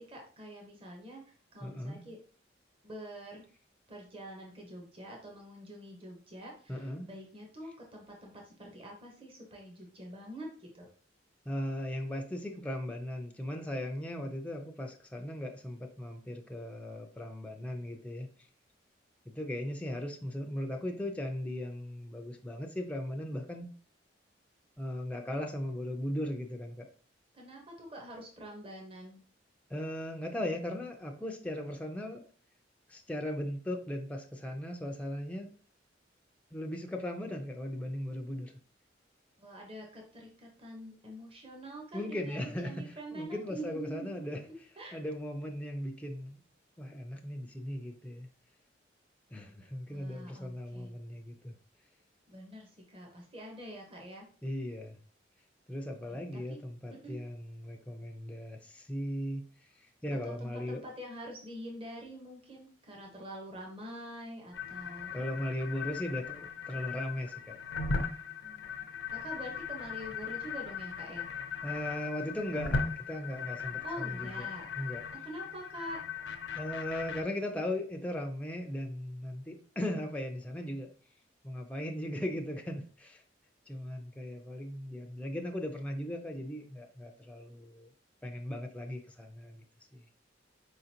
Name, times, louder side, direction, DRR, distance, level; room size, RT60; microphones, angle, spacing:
voice 1, 0.0-2.2 2.8-3.4 3.9-10.9 27.3-29.2 39.4-45.0 49.9-50.9 52.3-54.3 56.1-56.6 57.0-57.2 60.2-65.1 68.4-71.3 73.8-74.6 75.2-76.0, right 1 dB, 30° right, 0 dB, 1.0 m, -46 dB
voice 2, 1.6-2.0 6.7-7.1 11.5-18.3 19.3-23.7 24.8-26.9 29.7-32.2 32.9-35.5 36.5-38.5 41.9-44.4 44.9-46.4 46.8-48.3 49.3-51.5 54.4-55.0 55.7-59.4 59.7-60.8 65.1-67.6 71.6-74.5 74.8-75.0 76.6-80.9 81.4-83.2 83.7-87.9 88.2-89.6 89.9-90.0, left 1 dB, 5° left, 3 dB, 0.5 m, -38 dB
sound 1, 64.5-77.2, left 5 dB, 80° left, 0.6 m, -38 dB
4.9 x 3.8 x 2.9 m, 0.43 s
head